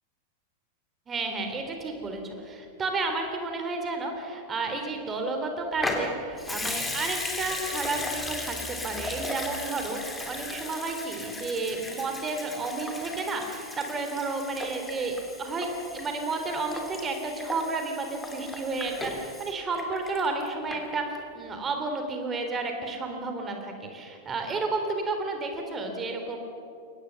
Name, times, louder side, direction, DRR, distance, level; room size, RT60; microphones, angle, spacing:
voice 1, 1.1-26.4, right 3 dB, 20° right, 4 dB, 3.5 m, -32 dB
Water tap faucet / Sink (filling or washing) / Liquid, 5.8-20.4 20.7-20.8, left 2 dB, 10° left, 3.0 m, -36 dB
23.0 x 19.0 x 7.1 m, 2.7 s
figure-of-eight pair, 90°, 0 cm